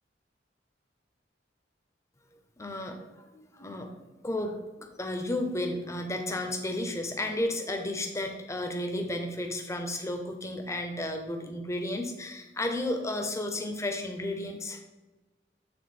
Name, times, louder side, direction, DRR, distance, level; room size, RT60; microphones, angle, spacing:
voice 1, 2.6-3.0 3.3-3.9 4.2-14.8, left 1 dB, 15° left, 4 dB, 0.8 m, -33 dB
8.6 x 3.7 x 4.2 m, 1.2 s
head